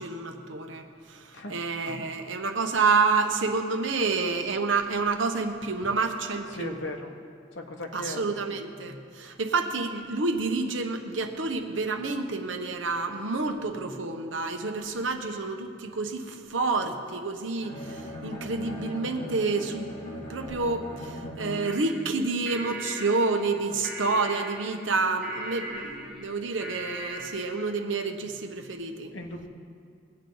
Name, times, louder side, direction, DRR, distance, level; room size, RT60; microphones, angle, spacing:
voice 1, 0.0-6.7 7.9-29.1, right 4 dB, 90° right, 5 dB, 1.0 m, -29 dB
voice 2, 6.5-7.1 7.5-8.6 9.2-9.4 29.1-29.5, left 2 dB, 80° left, 3 dB, 1.3 m, -38 dB
Bowed string instrument, 17.6-22.0, equal, 45° left, 2.3 m, -39 dB
sound 1, 21.6-27.7, right 1 dB, ahead, 1.6 m, -39 dB
20.5 x 8.7 x 3.9 m, 2.4 s
head